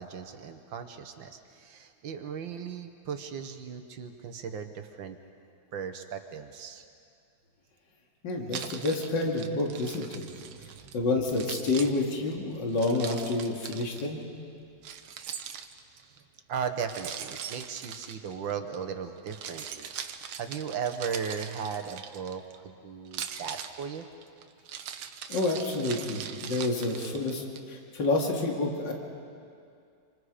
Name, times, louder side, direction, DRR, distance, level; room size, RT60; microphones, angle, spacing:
voice 1, 0.0-5.2 5.7-6.8 10.8-11.0 16.0-16.2 16.5-19.9 20.1-24.1, right 7 dB, 70° right, 7 dB, 1.8 m, -37 dB
voice 2, 8.2-10.2 10.9-14.2 25.3-28.9, left 2 dB, 60° left, 0 dB, 2.8 m, -29 dB
Keys jangling, 8.5-11.0 11.3-14.1 14.8-16.0 16.9-18.8 19.2-22.6 23.1-27.6, right 8 dB, 85° right, 1.8 m, -41 dB
27.0 x 26.0 x 5.0 m, 2.4 s
omnidirectional pair, 2.2 m